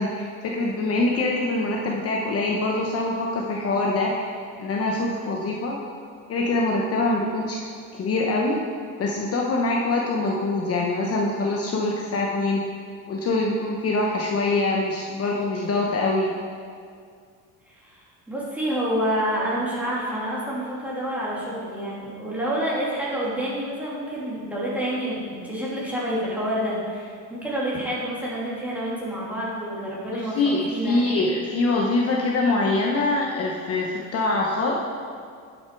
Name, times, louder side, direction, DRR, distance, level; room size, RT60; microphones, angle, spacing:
voice 1, 0.0-5.8 6.3-7.6 7.9-8.6 9.0-12.6 13.1-16.3 30.1-34.8, left 2 dB, 40° left, -1 dB, 1.0 m, -24 dB
voice 2, 17.7-31.0, equal, 5° right, -8 dB, 2.7 m, -28 dB
10.5 x 6.4 x 4.6 m, 2.1 s
cardioid pair, 130°, 38 cm